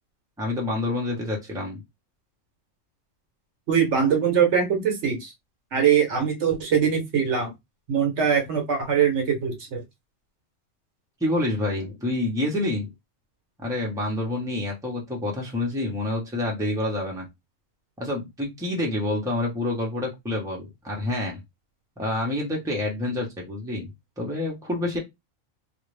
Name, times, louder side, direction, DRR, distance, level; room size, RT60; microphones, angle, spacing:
voice 1, 0.4-1.8 11.2-12.9 13.6-17.3 18.0-21.4 22.0-25.0, left 1 dB, 5° right, 0.8 m, -28 dB
voice 2, 3.7-5.3 5.7-7.5 7.9-9.8, right 7 dB, 60° right, 1.1 m, -22 dB
2.6 x 2.4 x 3.2 m
omnidirectional pair, 1.3 m